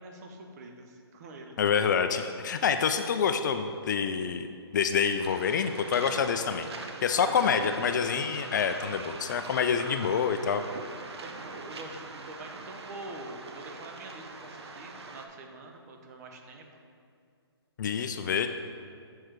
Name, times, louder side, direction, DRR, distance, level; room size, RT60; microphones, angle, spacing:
voice 1, 0.0-1.6 7.3-7.7 9.8-10.2 11.2-16.7, right 2 dB, 35° right, 3 dB, 0.8 m, -45 dB
voice 2, 1.6-4.5 4.7-10.6 17.8-18.5, left 6 dB, 45° left, 8 dB, 0.4 m, -27 dB
Waves surf, 5.2-15.3, right 3 dB, 70° right, 0.8 m, -43 dB
7.4 x 4.6 x 4.7 m, 2.3 s
hypercardioid pair, 145°, 14 cm